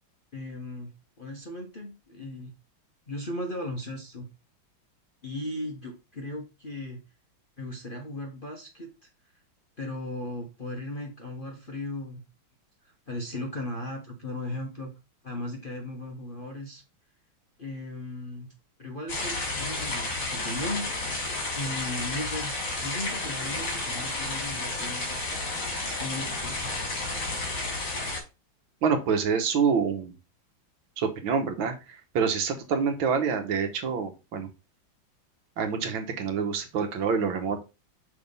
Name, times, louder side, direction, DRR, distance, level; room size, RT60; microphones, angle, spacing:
voice 1, 0.3-2.5 3.1-4.3 5.2-7.0 7.6-9.1 9.8-12.3 12.8-14.9 15.2-16.8 17.6-18.5 18.8-21.1 21.5-22.5 22.8-25.2 25.8-26.7, left 1 dB, 40° left, 1 dB, 0.8 m, -37 dB
sound 1, 19.1-28.2, left 2 dB, 75° left, 3.1 m, -31 dB
voice 2, 28.8-30.2 31.0-34.5 35.6-37.6, right 6 dB, 75° right, 6 dB, 1.8 m, -27 dB
5.9 x 3.4 x 5.3 m, 0.29 s
omnidirectional pair, 2.2 m